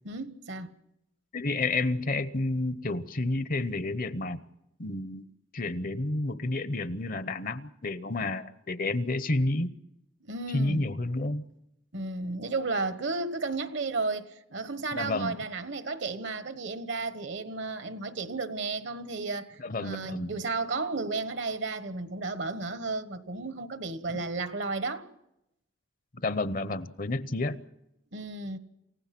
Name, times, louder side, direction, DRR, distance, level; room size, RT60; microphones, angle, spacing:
voice 1, 0.0-0.7 10.2-10.9 11.9-25.1 28.1-28.6, right 3 dB, 60° right, 1.3 m, -33 dB
voice 2, 1.3-4.5 4.8-5.3 5.5-9.7 10.5-11.4 14.9-15.4 19.6-20.4 26.2-27.6, left 2 dB, 45° left, 0.8 m, -30 dB
28.5 x 16.0 x 6.0 m
head